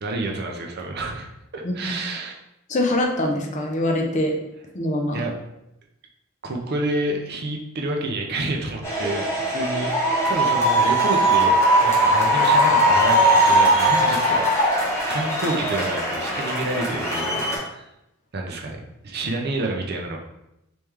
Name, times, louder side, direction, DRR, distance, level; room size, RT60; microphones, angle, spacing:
voice 1, 0.0-1.3 1.5-2.3 5.1-5.3 6.4-9.9 10.3-14.4 15.1-17.8 18.3-20.2, right 2 dB, 50° right, 1 dB, 0.5 m, -29 dB
voice 2, 2.7-4.4 4.7-5.2, left 1 dB, 35° left, 2 dB, 0.5 m, -23 dB
sound 1, 8.8-17.6, right 1 dB, 15° left, 0.9 m, -20 dB
3.1 x 3.0 x 3.5 m, 0.86 s
head